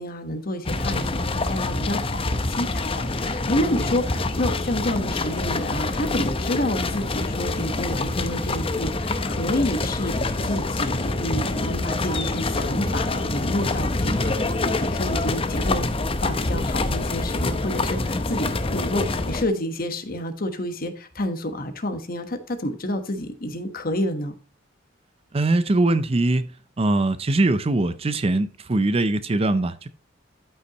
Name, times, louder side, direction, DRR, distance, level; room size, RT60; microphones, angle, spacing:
voice 1, 0.0-2.2 2.5-15.9 16.2-24.3, left 1 dB, 50° left, 1.3 m, -29 dB
sound 1, 0.7-19.4, left 2 dB, 30° left, 0.7 m, -26 dB
voice 2, 25.3-26.5 26.8-29.9, right 2 dB, 30° right, 0.5 m, -21 dB
12.5 x 5.7 x 3.0 m
head